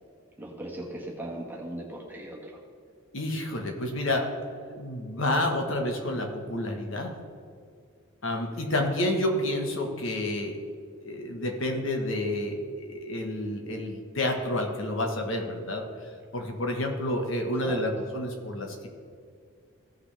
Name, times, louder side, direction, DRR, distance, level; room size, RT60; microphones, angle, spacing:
voice 1, 0.4-2.6 8.6-8.7 17.6-17.8, right 1 dB, 10° right, -3 dB, 1.5 m, -39 dB
voice 2, 3.1-4.3 4.7-7.1 8.2-10.6 11.0-18.9, left 1 dB, 65° left, 2 dB, 1.4 m, -29 dB
16.0 x 5.9 x 3.4 m, 2.3 s
head